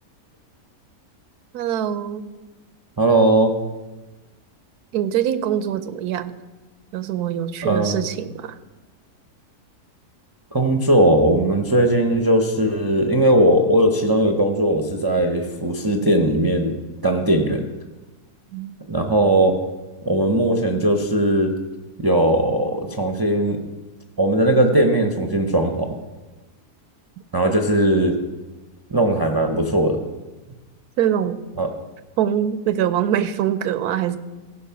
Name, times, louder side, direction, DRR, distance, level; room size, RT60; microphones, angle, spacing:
voice 1, 1.5-2.3 4.9-6.4 6.9-8.5 18.5-18.8 31.0-31.4 32.2-34.2, right 10 dB, 90° right, 13 dB, 1.2 m, -23 dB
voice 2, 3.0-3.5 7.6-8.0 10.5-16.8 17.0-17.6 18.9-19.5 20.0-21.5 22.0-23.6 24.2-25.9 27.3-28.2 28.9-30.0 31.6-31.7, right 1 dB, 30° right, 2 dB, 0.4 m, -18 dB
15.5 x 5.4 x 5.7 m, 1.2 s
omnidirectional pair, 1.6 m